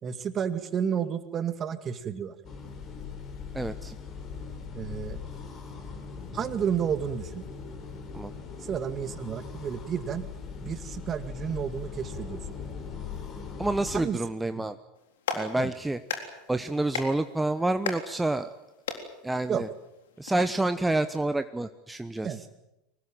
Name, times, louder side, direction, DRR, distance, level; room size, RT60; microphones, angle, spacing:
voice 1, 0.0-2.3 4.7-5.2 6.3-7.4 8.6-10.2 10.6-12.4 13.9-14.2 15.6-15.7 19.5-19.6 22.2-22.4, right 8 dB, 35° right, 11 dB, 2.1 m, -31 dB
sound 1, 2.4-14.1, left 5 dB, 40° left, 4.4 m, -40 dB
voice 2, 3.5-4.0 8.1-8.3 13.6-14.8 15.3-16.0 16.5-18.5 19.2-19.7 20.2-22.3, right 2 dB, 10° right, 9 dB, 1.0 m, -28 dB
Clapping, 15.0-20.4, left 6 dB, 70° left, 3.7 m, -38 dB
24.0 x 20.0 x 9.1 m, 0.92 s
figure-of-eight pair, 80°, 0 cm